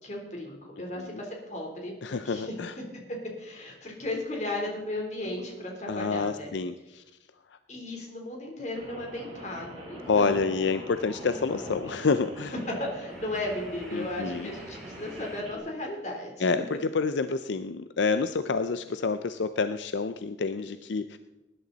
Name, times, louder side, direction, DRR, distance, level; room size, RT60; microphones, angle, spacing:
voice 1, 0.0-2.5 3.4-6.5 7.7-10.4 11.3-11.4 12.8-16.5, left 1 dB, 40° left, 0 dB, 3.5 m, -35 dB
voice 2, 2.0-2.7 5.9-7.0 10.1-12.5 13.9-14.5 16.4-21.2, left 4 dB, 75° left, 11 dB, 0.5 m, -28 dB
Rain, 8.7-15.6, right 1 dB, 35° right, 4.3 m, -45 dB
sound 1, 9.1-9.3 9.6-12.1 12.4-12.6 13.1-15.4, equal, 5° left, 2.9 m, -44 dB
19.5 x 11.0 x 4.1 m, 1.0 s
head